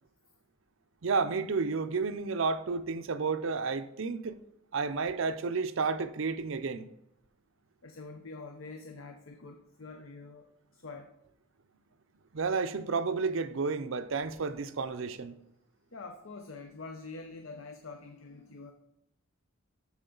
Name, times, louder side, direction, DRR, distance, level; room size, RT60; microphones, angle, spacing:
voice 1, 1.0-4.4 4.7-6.9 12.3-15.3, right 4 dB, 65° right, 0.5 m, -31 dB
voice 2, 7.8-11.1 15.9-18.7, left 3 dB, 65° left, 0.7 m, -46 dB
13.5 x 4.6 x 3.9 m
head